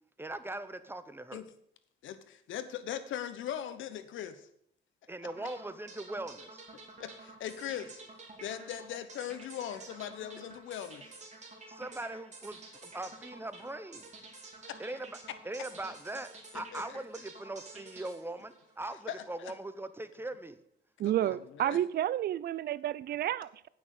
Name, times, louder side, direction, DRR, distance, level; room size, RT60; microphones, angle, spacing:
voice 1, 0.2-1.4 5.1-6.6 11.7-14.1 14.8-15.2 15.4-20.6, right 2 dB, 10° right, 12 dB, 0.8 m, -40 dB
voice 2, 2.0-4.5 7.0-8.0 8.4-11.2 14.6-14.8 16.5-17.0 19.1-19.5 21.0-21.8, left 10 dB, 75° left, 12 dB, 1.0 m, -40 dB
sound 1, 5.3-19.4, right 3 dB, 35° right, 2.5 m, -51 dB
voice 3, 21.0-23.7, right 12 dB, 55° right, 19 dB, 0.4 m, -31 dB
8.7 x 6.2 x 6.6 m, 0.71 s
cardioid pair, 90°, 20 cm